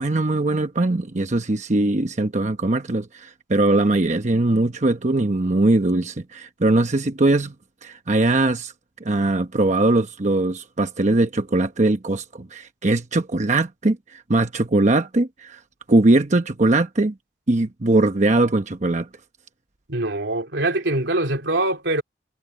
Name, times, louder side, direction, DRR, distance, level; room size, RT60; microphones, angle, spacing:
voice 1, 0.0-7.5 7.8-8.7 9.0-15.6 15.9-17.1 17.5-19.1, right 2 dB, 40° right, 1.0 m, -21 dB
voice 2, 19.9-22.0, right 2 dB, 85° right, 2.9 m, -23 dB
head